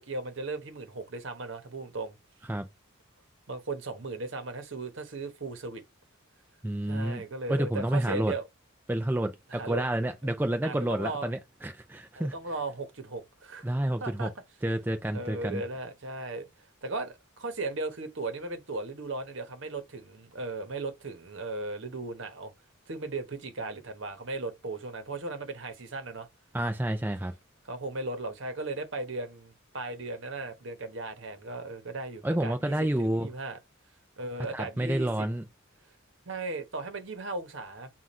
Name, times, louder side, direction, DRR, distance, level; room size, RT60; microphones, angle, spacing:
voice 1, 0.0-2.2 3.5-5.8 6.9-8.4 9.5-9.8 10.6-11.3 12.1-13.7 14.0-14.3 15.1-16.5 16.8-22.5 22.9-26.3 27.6-33.6 34.2-35.3 36.3-37.9, right 2 dB, 60° right, 1.0 m, -37 dB
voice 2, 6.6-7.2 7.5-8.3 8.9-12.3 13.6-14.3 14.6-15.6 26.5-27.3 32.2-33.3 34.5-35.4, right 1 dB, 10° right, 0.4 m, -29 dB
5.6 x 2.4 x 3.1 m
head